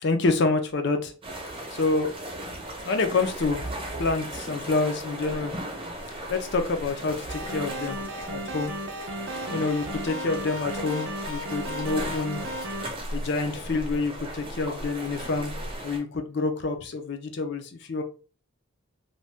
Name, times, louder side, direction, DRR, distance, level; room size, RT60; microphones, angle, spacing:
voice 1, 0.0-1.1 1.7-2.1 2.8-3.6 4.0-5.5 6.3-8.0 8.3-8.7 9.5-12.4 13.1-15.5 15.8-18.0, left 3 dB, 50° left, 6 dB, 0.5 m, -27 dB
sound 1, 1.2-16.0, right 1 dB, 25° right, 0.9 m, -37 dB
sound 2, 7.3-12.9, right 1 dB, 60° right, 0.6 m, -35 dB
2.6 x 2.2 x 3.3 m, 0.37 s
head